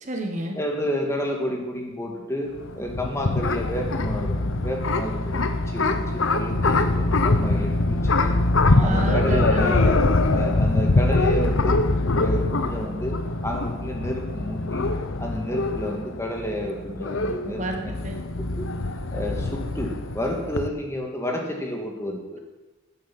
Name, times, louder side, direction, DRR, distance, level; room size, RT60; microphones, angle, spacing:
voice 1, 0.0-0.6 8.7-9.7 17.4-18.2, right 1 dB, 35° right, 3 dB, 1.3 m, -29 dB
voice 2, 0.5-2.5 2.8-8.4 8.8-10.0 10.3-11.8 12.1-13.2 13.4-14.9 15.2-17.9 18.6-18.7 19.1-22.4, equal, 15° left, 1 dB, 1.7 m, -30 dB
sound 1, 2.6-20.7, left 2 dB, 70° left, 0.8 m, -23 dB
14.0 x 9.9 x 5.9 m, 1.1 s
head